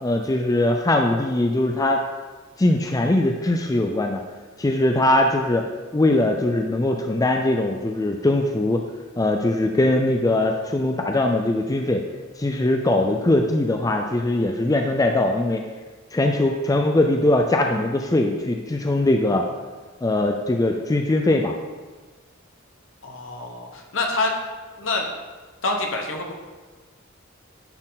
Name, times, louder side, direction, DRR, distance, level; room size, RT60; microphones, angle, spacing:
voice 1, 0.0-2.0 2.6-4.2 4.6-5.7 5.9-8.8 9.2-12.0 12.4-15.6 16.1-19.4 20.0-21.5, left 1 dB, 20° left, 3 dB, 0.4 m, -21 dB
voice 2, 23.0-24.4 24.8-25.1 25.6-26.3, left 2 dB, 75° left, 1 dB, 1.1 m, -26 dB
9.7 x 4.3 x 4.0 m, 1.3 s
head